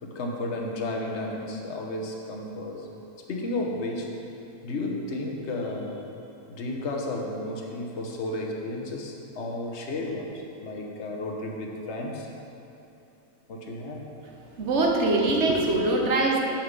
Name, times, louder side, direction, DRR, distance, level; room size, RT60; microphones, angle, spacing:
voice 1, 0.0-2.9 3.3-4.2 4.6-6.0 6.5-12.3 13.5-14.0, left 2 dB, 60° left, 0 dB, 1.2 m, -33 dB
voice 2, 14.6-16.4, right 2 dB, 60° right, 0 dB, 1.2 m, -23 dB
7.4 x 5.5 x 5.3 m, 2.8 s
omnidirectional pair, 1.4 m